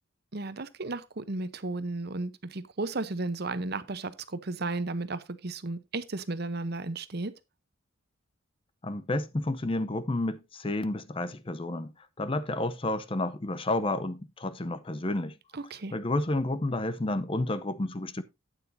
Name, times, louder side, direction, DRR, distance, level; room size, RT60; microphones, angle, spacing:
voice 1, 0.3-7.3 15.5-15.9, right 2 dB, 50° right, 0.8 m, -34 dB
voice 2, 8.8-11.9 12.2-15.3 15.9-18.2, left 2 dB, 25° left, 0.6 m, -30 dB
12.0 x 9.0 x 2.6 m
head